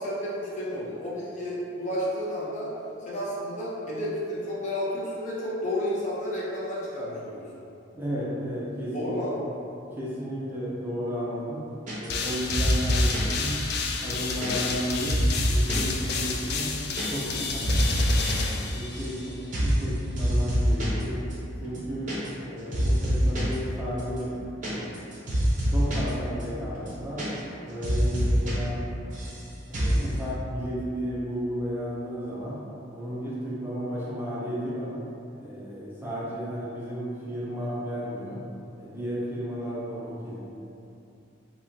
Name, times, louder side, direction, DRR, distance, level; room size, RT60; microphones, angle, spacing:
voice 1, 0.0-2.7 3.0-7.4 8.9-9.5 19.2-19.3, equal, 40° left, -7 dB, 0.7 m, -31 dB
voice 2, 7.9-9.1 10.0-11.6 12.0-13.6 14.0-15.2 15.5-16.7 17.1-17.8 18.7-19.3 19.6-21.2 21.6-22.1 22.4-24.3 24.6-24.9 25.5-27.2 27.6-28.8 29.7-32.6 32.9-34.9 35.4-38.4 38.8-40.5, equal, 10° right, -9 dB, 0.5 m, -33 dB
sound 1, 11.9-12.2 12.5-13.3 13.8-15.9 16.2-16.3 16.5-17.0 17.3-18.3 18.6-19.2 19.5-19.8 20.2-21.0 21.3-21.4 21.6-22.5 22.7-23.5 24.0-26.1 26.4-26.5 26.7-27.6 27.8-28.5 28.8-29.4 29.7-30.1, equal, 40° right, 0.7 m, -25 dB
sound 2, 12.1-19.4, left 4 dB, 55° left, 0.3 m, -31 dB
3.6 x 2.9 x 2.7 m, 2.7 s
head